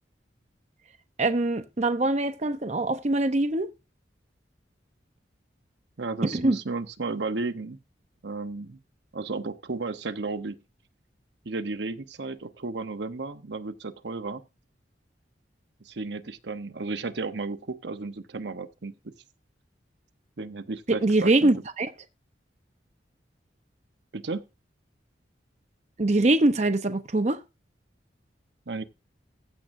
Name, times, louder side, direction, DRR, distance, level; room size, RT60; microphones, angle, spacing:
voice 1, 1.2-3.7 6.2-6.6 20.9-21.9 26.0-27.4, right 2 dB, 40° right, 0.8 m, -23 dB
voice 2, 6.0-7.8 8.2-8.8 9.1-10.6 11.4-14.4 15.8-19.1 20.4-21.5 24.1-24.5 28.7-28.8, right 3 dB, 70° right, 0.9 m, -33 dB
15.0 x 7.6 x 2.6 m
head